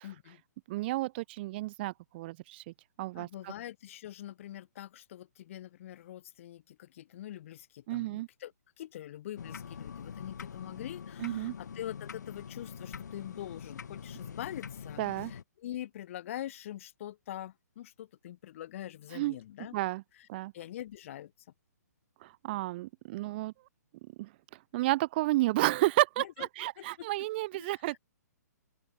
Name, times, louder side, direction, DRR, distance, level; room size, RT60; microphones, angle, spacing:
voice 1, 0.0-0.4 3.1-8.5 8.8-19.7 20.2-20.3 20.5-21.3 26.2-26.5 26.8-27.3 27.5-28.0, left 12 dB, 50° left, 2.2 m, -44 dB
voice 2, 0.7-3.5 7.9-8.3 11.2-11.5 15.0-15.3 19.1-19.4 19.7-20.0 20.3-20.5 22.2-23.5 24.2-24.3 24.7-28.0, right 18 dB, 35° right, 0.5 m, -31 dB
sound 1, 9.4-15.4, left 7 dB, 75° left, 0.4 m, -44 dB
open air
hypercardioid pair, 130°, 9 cm